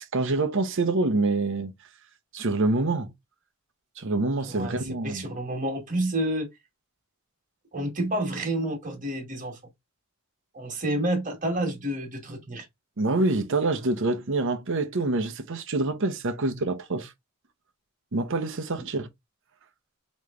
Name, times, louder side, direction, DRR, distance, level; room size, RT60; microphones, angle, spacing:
voice 1, 0.0-1.7 2.3-3.1 4.0-5.3 13.0-17.1 18.1-19.1, right 2 dB, 65° right, 0.8 m, -26 dB
voice 2, 4.5-6.5 7.7-9.6 10.5-12.6 18.8-18.9, right 1 dB, 40° right, 1.6 m, -29 dB
3.3 x 3.1 x 3.7 m
head